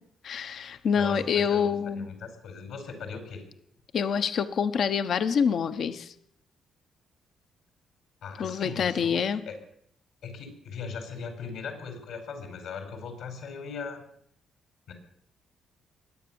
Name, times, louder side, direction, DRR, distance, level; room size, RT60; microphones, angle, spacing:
voice 1, 0.2-2.1 3.9-6.1 8.4-9.4, left 7 dB, 60° left, 11 dB, 1.0 m, -26 dB
voice 2, 0.9-3.4 8.2-9.6 10.2-14.0 14.9-15.0, left 5 dB, 80° left, 6 dB, 4.7 m, -39 dB
22.0 x 8.9 x 7.1 m, 0.69 s
cardioid pair, 90°, 0 cm